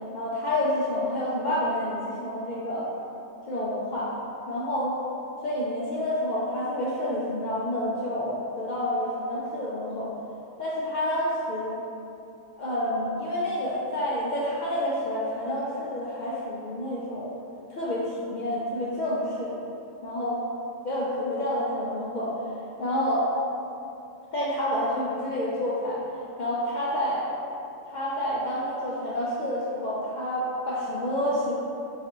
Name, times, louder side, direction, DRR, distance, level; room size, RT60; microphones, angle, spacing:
voice 1, 0.1-2.9 3.5-4.1 4.5-4.9 5.4-10.1 10.6-11.8 12.6-17.3 17.7-19.5 20.0-20.4 20.8-22.3 22.8-23.3 24.3-26.0 26.4-27.3 27.8-31.5, left 1 dB, 70° left, -7 dB, 0.4 m, -28 dB
3.9 x 2.7 x 2.9 m, 2.7 s
omnidirectional pair, 1.3 m